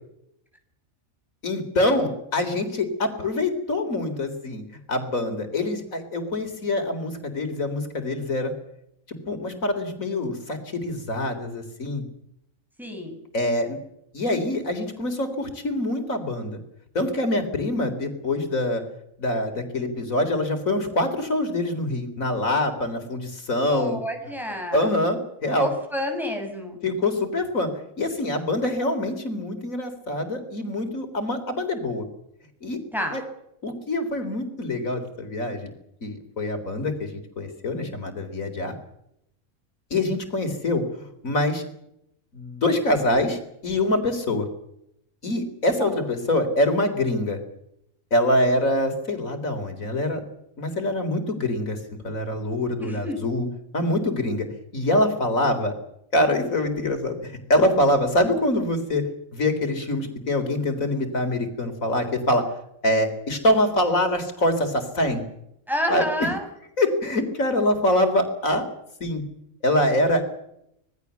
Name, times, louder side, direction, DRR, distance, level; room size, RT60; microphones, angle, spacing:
voice 1, 1.4-4.6 4.9-8.5 9.1-12.0 13.3-13.8 14.1-16.6 16.9-18.8 19.2-24.0 24.7-25.7 26.8-27.7 28.0-32.1 32.6-32.8 33.1-33.2 33.6-35.7 36.0-37.1 37.4-38.7 39.9-41.6 42.3-44.5 45.2-47.4 48.1-50.2 50.6-51.8 52.0-53.5 53.7-54.5 54.7-55.7 56.1-59.0 59.3-62.5 62.8-65.2 65.9-66.0 66.8-68.7 69.0-69.2 69.6-70.2, left 1 dB, 75° left, 7 dB, 4.2 m, -24 dB
voice 2, 12.8-13.2 23.7-24.9 25.6-26.8 32.9-33.2 45.8-46.0 52.8-53.2 65.7-66.4, equal, ahead, 2 dB, 6.8 m, -29 dB
26.0 x 20.0 x 7.0 m, 0.78 s
omnidirectional pair, 1.4 m